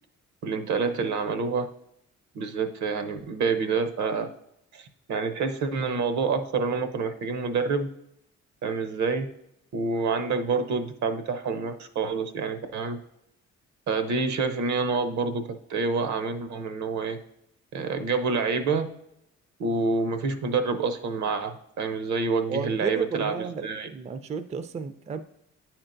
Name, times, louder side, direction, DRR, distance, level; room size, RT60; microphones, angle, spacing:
voice 1, 0.4-1.7 2.3-4.3 4.7-7.9 8.6-9.3 9.7-13.0 13.9-17.2 17.7-18.9 19.6-23.9, right 4 dB, 70° right, 9 dB, 0.7 m, -27 dB
voice 2, 22.5-25.2, right 5 dB, 25° right, 10 dB, 0.4 m, -32 dB
9.6 x 4.5 x 2.6 m, 0.78 s
cardioid pair, 90°, 30 cm